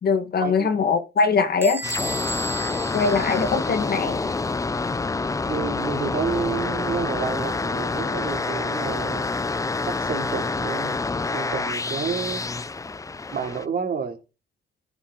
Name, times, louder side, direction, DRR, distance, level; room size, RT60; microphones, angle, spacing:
voice 1, 0.0-1.8 2.9-4.2, left 5 dB, 50° left, 1.8 m, -22 dB
Bell / Squeak, 1.6-4.1, right 1 dB, 10° right, 1.5 m, -34 dB
sound 1, 1.8-13.7, left 3 dB, 15° left, 0.5 m, -27 dB
voice 2, 5.5-9.3 9.8-11.0 11.3-12.4 13.3-14.2, right 6 dB, 50° right, 3.2 m, -29 dB
14.5 x 6.0 x 4.0 m
cardioid pair, 90°, 20 cm